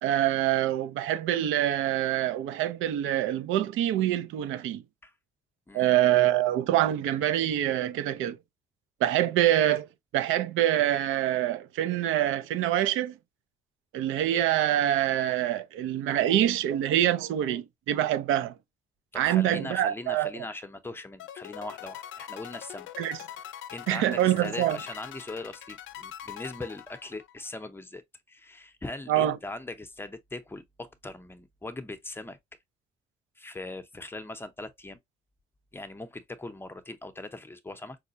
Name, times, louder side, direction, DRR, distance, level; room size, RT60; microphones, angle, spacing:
voice 1, 0.0-4.8 5.7-8.4 9.0-9.9 10.1-13.1 13.9-18.5 19.2-20.3 23.0-23.2 23.9-24.8 29.1-29.3, right 12 dB, 90° right, 0.5 m, -25 dB
voice 2, 19.1-22.9 23.7-28.0 28.3-32.4 33.4-35.0 35.7-38.0, left 2 dB, 10° left, 0.6 m, -40 dB
sound 1, 21.2-27.5, left 11 dB, 75° left, 0.5 m, -43 dB
4.8 x 2.2 x 2.5 m
cardioid pair, 90°, 20 cm